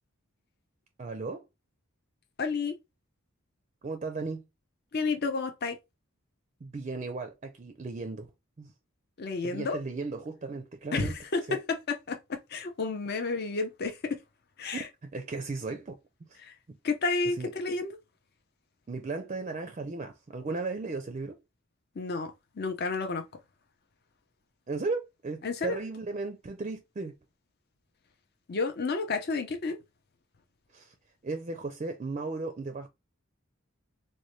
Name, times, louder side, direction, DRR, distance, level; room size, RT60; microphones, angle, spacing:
voice 1, 1.0-1.4 3.8-4.4 6.6-8.3 8.6-8.7 9.4-11.2 11.5-11.6 15.1-16.0 16.3-16.4 16.7-16.8 17.4-17.5 18.9-21.4 24.7-27.1 30.7-30.9 31.2-32.9, right 3 dB, 35° right, 0.4 m, -35 dB
voice 2, 2.4-2.8 4.9-5.8 9.2-9.8 10.9-14.1 14.6-14.9 16.4-16.5 16.8-18.0 22.0-23.2 25.4-25.8 28.5-29.8, left 4 dB, 50° left, 0.6 m, -31 dB
4.0 x 2.1 x 3.1 m
head